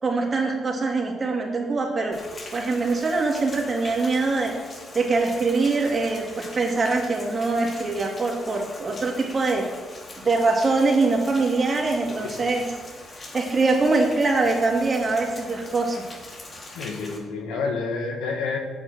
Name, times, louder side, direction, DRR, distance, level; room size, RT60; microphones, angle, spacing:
voice 1, 0.0-2.2 2.5-4.5 4.9-9.6 10.2-12.6 13.3-16.0, right 3 dB, 35° right, 0 dB, 2.8 m, -23 dB
Rain, 2.1-17.2, left 2 dB, 40° left, 2.5 m, -42 dB
voice 2, 16.7-18.6, left 4 dB, 90° left, 3 dB, 1.7 m, -28 dB
8.9 x 8.5 x 6.2 m, 1.4 s
cardioid pair, 90°, 0 cm